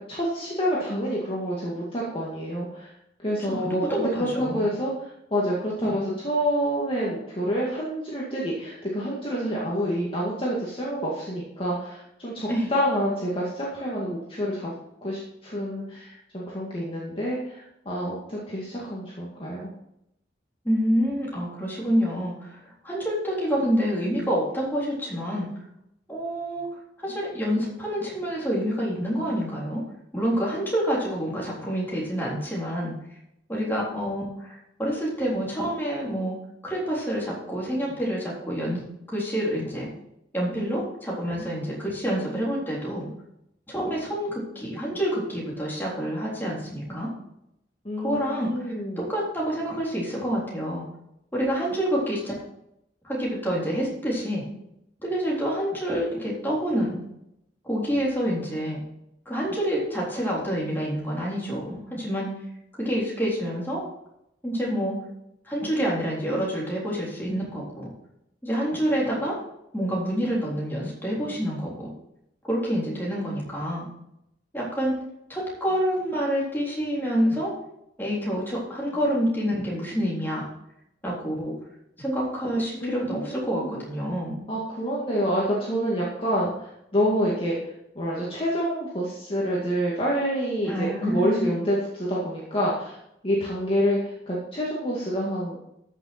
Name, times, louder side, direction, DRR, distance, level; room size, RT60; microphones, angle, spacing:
voice 1, 0.1-2.9 3.2-14.7 15.0-19.7 47.8-49.1 82.8-83.8 84.5-87.6 88.0-93.0 93.2-95.6, equal, 30° left, -5 dB, 2.1 m, -27 dB
voice 2, 3.5-4.7 5.9-6.0 12.5-12.7 20.6-22.6 22.8-25.5 26.1-26.7 27.0-29.8 30.1-32.9 33.5-36.3 36.6-39.9 40.3-43.1 43.7-47.1 48.0-48.5 49.0-50.8 51.3-52.3 53.0-54.4 55.0-57.0 57.6-58.8 59.3-62.3 62.8-63.8 64.4-65.0 65.5-67.9 68.4-69.4 69.7-71.9 72.5-73.9 74.5-75.0 75.3-77.5 78.0-80.5 81.0-81.5 82.0-84.4 90.7-91.6, equal, 10° left, -5 dB, 3.7 m, -27 dB
13.5 x 6.5 x 4.4 m, 0.80 s
head